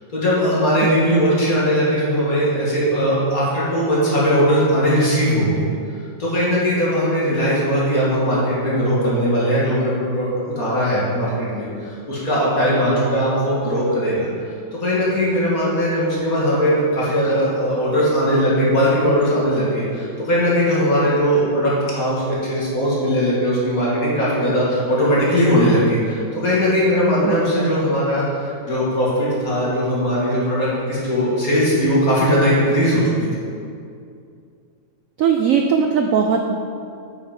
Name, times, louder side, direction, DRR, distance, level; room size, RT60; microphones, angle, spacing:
voice 1, 0.1-5.6 6.2-14.3 14.7-33.3, equal, 45° left, -7 dB, 2.7 m, -19 dB
voice 2, 27.2-27.7 35.2-36.6, right 6 dB, 80° right, 4 dB, 0.7 m, -19 dB
8.2 x 6.5 x 5.3 m, 2.4 s
omnidirectional pair, 2.0 m